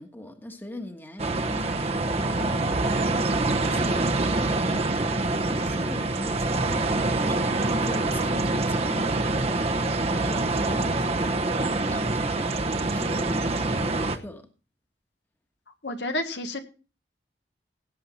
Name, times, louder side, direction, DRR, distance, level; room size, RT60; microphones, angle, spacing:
voice 1, 0.0-3.1 3.4-9.6 9.9-12.5 12.9-14.5, left 1 dB, 10° left, 1.4 m, -41 dB
sound 1, 1.2-14.2, right 2 dB, 35° right, 0.9 m, -25 dB
voice 2, 15.8-16.6, left 1 dB, 75° left, 1.7 m, -30 dB
17.5 x 7.6 x 4.3 m
head